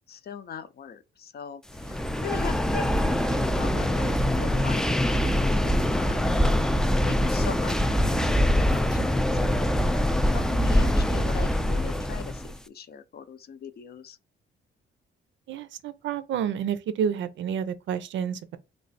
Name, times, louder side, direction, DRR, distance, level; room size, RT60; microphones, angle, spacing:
voice 1, 0.1-6.5 7.1-9.6 10.3-14.2, left 7 dB, 50° left, 0.6 m, -40 dB
sound 1, 1.7-12.6, equal, 5° left, 0.3 m, -24 dB
voice 2, 15.5-18.6, right 8 dB, 70° right, 0.5 m, -29 dB
3.3 x 2.3 x 4.0 m
cardioid pair, 90°, 20 cm